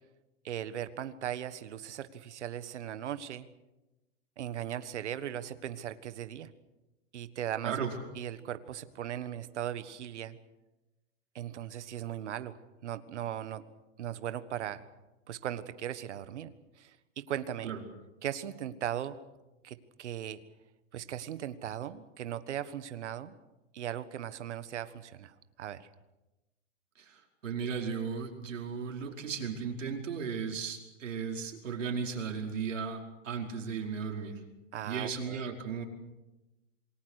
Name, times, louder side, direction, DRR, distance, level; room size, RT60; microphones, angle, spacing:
voice 1, 0.4-3.5 4.4-6.5 7.1-7.8 8.1-10.4 11.3-12.5 12.8-13.6 14.0-14.9 15.3-16.5 16.8-17.7 18.2-19.2 19.6-20.4 20.9-23.3 23.7-25.9 34.7-35.5, right 11 dB, 65° right, 12 dB, 1.5 m, -38 dB
voice 2, 7.6-7.9 17.6-17.8 27.0-34.4 34.8-35.8, right 6 dB, 85° right, 2 dB, 5.0 m, -36 dB
27.5 x 20.5 x 6.5 m, 1.0 s
hypercardioid pair, 165°, 37 cm